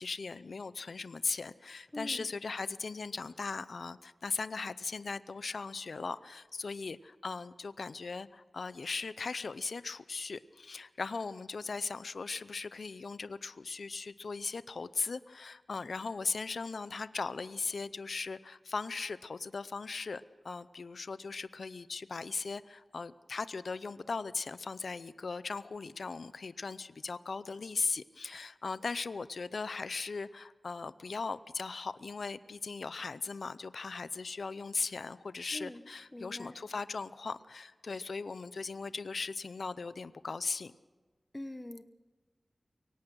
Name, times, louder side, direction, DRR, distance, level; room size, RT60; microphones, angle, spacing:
voice 1, 0.0-40.7, left 4 dB, 80° left, 15 dB, 0.6 m, -38 dB
voice 2, 1.9-2.3 35.5-35.8 36.1-36.6 41.3-41.8, left 1 dB, 20° left, 11 dB, 1.0 m, -43 dB
23.5 x 18.0 x 6.3 m, 1.3 s
wide cardioid pair, 85°, 0 cm